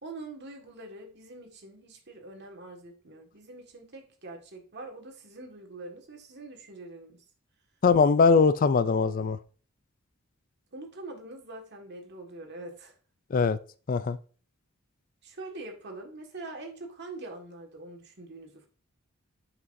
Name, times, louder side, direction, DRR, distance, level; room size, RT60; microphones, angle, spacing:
voice 1, 0.0-7.2 10.7-13.0 15.2-18.7, right 2 dB, 55° right, 1.8 m, -44 dB
voice 2, 7.8-9.4 13.3-13.6 13.9-14.2, left 5 dB, 40° left, 0.4 m, -21 dB
9.4 x 5.9 x 2.6 m
head